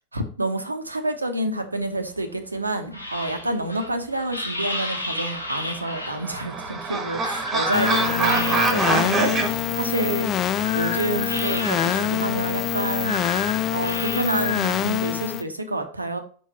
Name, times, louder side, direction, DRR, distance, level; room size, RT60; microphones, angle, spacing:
voice 1, 0.1-10.3 10.7-13.2 13.5-16.2, right 2 dB, 80° right, 0.9 m, -28 dB
sound 1, 1.8-9.0 9.4-15.2, left 2 dB, 85° left, 1.2 m, -32 dB
sound 2, 5.6-9.5, right 4 dB, 20° right, 1.5 m, -25 dB
sound 3, 7.7-15.4, left 10 dB, 30° left, 0.5 m, -25 dB
5.5 x 4.7 x 4.0 m
figure-of-eight pair, 90°, 0 cm